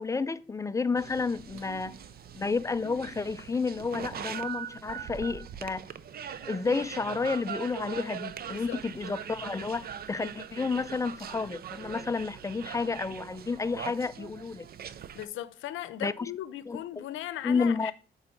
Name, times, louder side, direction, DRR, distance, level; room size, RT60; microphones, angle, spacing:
voice 1, 0.0-2.0 2.3-5.8 6.3-14.7 16.0-16.3 16.7-17.0 17.4-17.9, left 4 dB, 15° left, 0.3 m, -31 dB
sound 1, 1.0-15.3, right 9 dB, 50° right, 0.6 m, -41 dB
sound 2, 1.1-14.0, right 4 dB, 90° right, 1.2 m, -60 dB
voice 2, 8.5-8.8 15.1-17.9, left 13 dB, 80° left, 0.7 m, -38 dB
7.8 x 4.0 x 5.4 m
cardioid pair, 90°, 20 cm